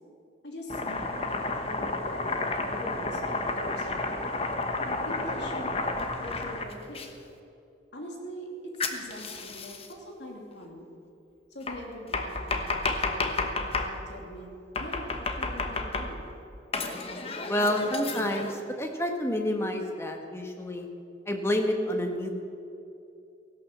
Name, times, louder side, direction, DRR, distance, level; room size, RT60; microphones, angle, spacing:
voice 1, 0.4-4.1 4.8-7.0 7.9-10.9 11.5-12.7 13.0-16.2, equal, 75° left, 1 dB, 3.0 m, -42 dB
Domestic sounds home sounds, 0.7-7.1 8.8-9.9 11.7-13.9 14.8-16.3 16.7-18.5, left 3 dB, 30° left, 1.1 m, -31 dB
voice 2, 17.5-20.9 21.3-22.3, left 1 dB, 15° left, 3 dB, 1.4 m, -29 dB
16.0 x 11.5 x 7.4 m, 2.7 s
head